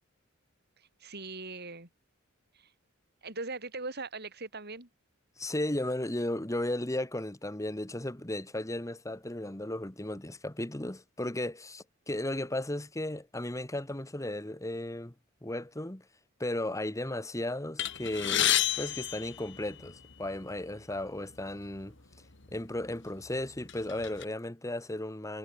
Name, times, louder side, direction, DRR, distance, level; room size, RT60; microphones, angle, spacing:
voice 1, 0.8-1.9 2.5-2.7 3.2-4.9, right 3 dB, 50° right, 6.1 m, -40 dB
voice 2, 5.4-15.1 15.4-16.0 16.4-21.9 22.5-25.4, left 1 dB, 15° left, 1.5 m, -35 dB
sound 1, 17.8-20.1 21.0-21.1 21.4-21.6 22.4-22.6 23.1-24.2, left 12 dB, 60° left, 2.8 m, -30 dB
head